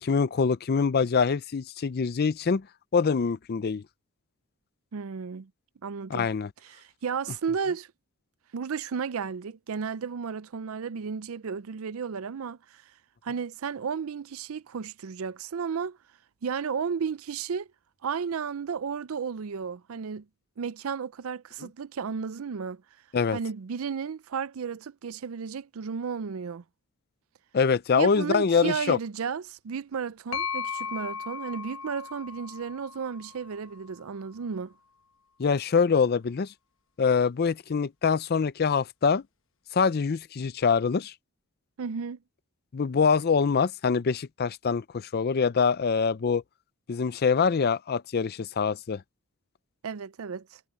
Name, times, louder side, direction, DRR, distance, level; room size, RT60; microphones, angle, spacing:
voice 1, 0.0-2.6 2.9-3.8 6.1-6.5 23.1-23.4 27.5-29.0 35.4-36.5 37.0-39.2 39.7-41.1 42.7-46.4 46.9-49.0, left 5 dB, 45° left, 0.4 m, -24 dB
voice 2, 4.9-5.5 5.8-6.3 6.6-7.9 8.5-12.8 13.2-16.0 16.4-17.7 18.0-20.3 20.6-22.8 23.3-26.6 27.9-34.7 41.8-42.2 49.8-50.6, right 6 dB, 70° right, 0.5 m, -33 dB
sound 1, 30.3-34.1, left 6 dB, 60° left, 1.1 m, -37 dB
head